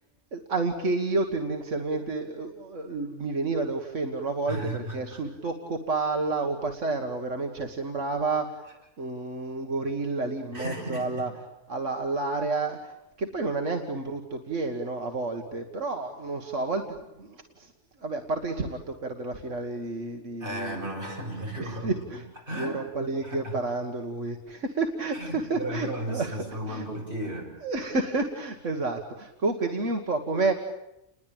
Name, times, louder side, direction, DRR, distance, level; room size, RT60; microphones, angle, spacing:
voice 1, 0.3-11.3 11.7-17.7 18.0-20.8 21.6-22.3 22.6-26.9 27.6-30.5, right 3 dB, 85° right, 4 dB, 2.1 m, -30 dB
voice 2, 4.5-5.2 10.5-11.2 20.4-22.0 22.5-22.8 23.2-23.5 25.1-27.5, right 1 dB, 45° right, 0 dB, 7.5 m, -34 dB
30.0 x 21.5 x 9.0 m, 0.87 s
omnidirectional pair, 1.2 m